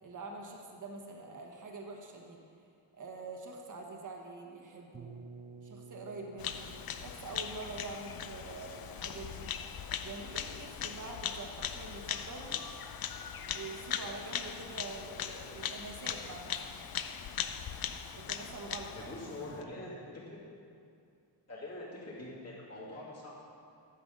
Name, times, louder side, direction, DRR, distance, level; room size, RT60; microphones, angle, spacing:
voice 1, 0.0-2.4 2.9-5.1 5.6-6.7 7.0-9.5 10.0-12.6 13.4-16.8 18.1-19.1, right 3 dB, 45° right, 1 dB, 1.3 m, -45 dB
sound 1, 4.9-10.7, right 4 dB, 20° right, 0.5 m, -54 dB
Bird vocalization bird call bird song, 6.4-19.6, left 8 dB, 55° left, 0.5 m, -40 dB
voice 2, 18.9-20.4 21.5-23.3, left 1 dB, 35° left, -6 dB, 2.8 m, -44 dB
12.0 x 8.0 x 5.4 m, 2.4 s
wide cardioid pair, 140°, 44 cm